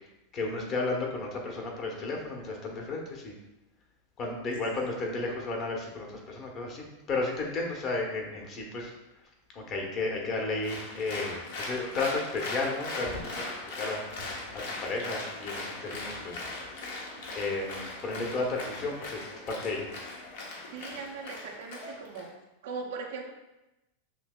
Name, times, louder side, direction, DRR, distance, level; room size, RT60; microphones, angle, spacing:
voice 1, 0.3-3.3 4.2-8.9 9.5-14.0 14.5-16.4 17.3-19.9, left 3 dB, 40° left, 0 dB, 1.0 m, -33 dB
Applause, 10.6-22.3, left 2 dB, 70° left, 0.9 m, -39 dB
voice 2, 20.7-22.3 22.6-23.3, right 4 dB, 70° right, 2 dB, 0.6 m, -39 dB
5.8 x 2.8 x 2.4 m, 0.97 s
hypercardioid pair, 105°, 0 cm